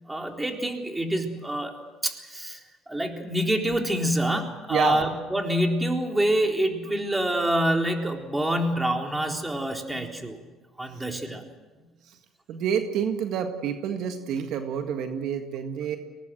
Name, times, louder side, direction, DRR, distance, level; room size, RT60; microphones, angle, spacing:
voice 1, 0.1-2.6 2.9-10.4 10.8-11.4, right 1 dB, 10° right, 3 dB, 3.9 m, -26 dB
voice 2, 4.7-5.0 12.1-12.2 12.5-16.0, right 8 dB, 65° right, 6 dB, 1.8 m, -28 dB
23.5 x 19.0 x 7.9 m, 1.3 s
supercardioid pair, 70°, 0 cm